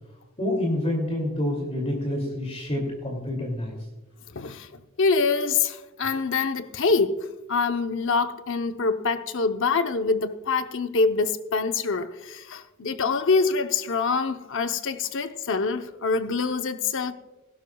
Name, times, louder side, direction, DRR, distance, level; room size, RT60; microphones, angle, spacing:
voice 1, 0.4-3.8, left 1 dB, 30° left, 2.5 m, -27 dB
voice 2, 4.3-4.7 5.0-17.1, left 4 dB, 60° left, 0.8 m, -25 dB
17.5 x 11.5 x 2.3 m
head